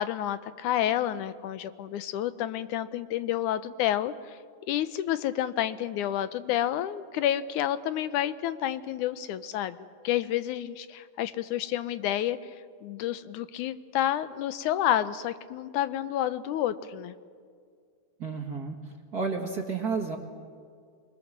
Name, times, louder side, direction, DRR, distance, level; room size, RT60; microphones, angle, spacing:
voice 1, 0.0-4.4 4.7-9.8 10.0-12.6 12.8-17.2, left 11 dB, 80° left, 13 dB, 2.2 m, -29 dB
voice 2, 18.2-18.8 19.1-20.2, right 4 dB, 35° right, 2 dB, 1.8 m, -31 dB
25.5 x 22.5 x 7.4 m, 2.1 s
omnidirectional pair, 3.5 m